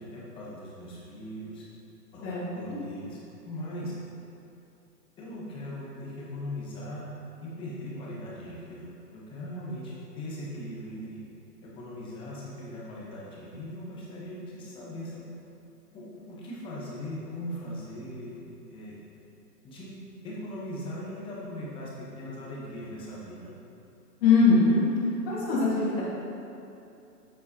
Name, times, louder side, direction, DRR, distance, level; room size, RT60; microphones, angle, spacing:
voice 1, 0.0-1.6 2.1-3.2 3.4-3.9 5.2-7.1 7.4-11.2 11.6-15.3 15.9-18.4 18.7-19.0 19.6-20.0 20.2-23.5, left 1 dB, 10° left, -5 dB, 0.9 m, -39 dB
voice 2, 2.2-2.8 24.2-24.9 25.3-26.0, left 4 dB, 35° left, -11 dB, 1.8 m, -22 dB
9.6 x 7.4 x 2.8 m, 2.8 s
hypercardioid pair, 145°, 48 cm